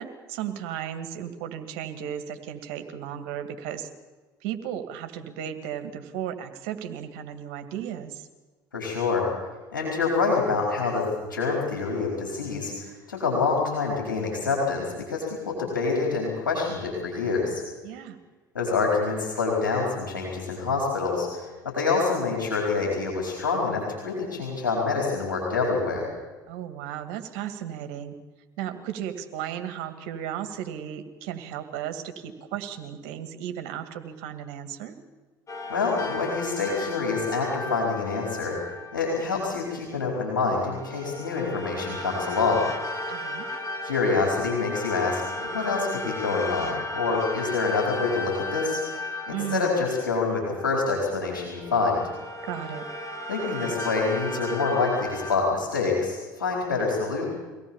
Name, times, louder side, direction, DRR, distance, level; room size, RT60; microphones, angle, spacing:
voice 1, 0.0-3.9 4.4-8.3 17.8-18.2 26.5-28.2 28.6-35.0 43.1-43.5 49.3-49.9 52.4-52.8, right 10 dB, 65° right, 7 dB, 2.2 m, -35 dB
voice 2, 8.7-9.3 9.7-17.6 18.5-26.1 35.7-38.6 38.9-42.7 43.8-48.8 49.3-52.0 53.3-57.2, left 4 dB, 85° left, -2 dB, 4.6 m, -26 dB
sound 1, 35.5-39.7 40.6-51.0 51.5-55.4, left 2 dB, 30° left, 4.2 m, -35 dB
24.0 x 17.5 x 7.2 m, 1.3 s
hypercardioid pair, 65°, 11 cm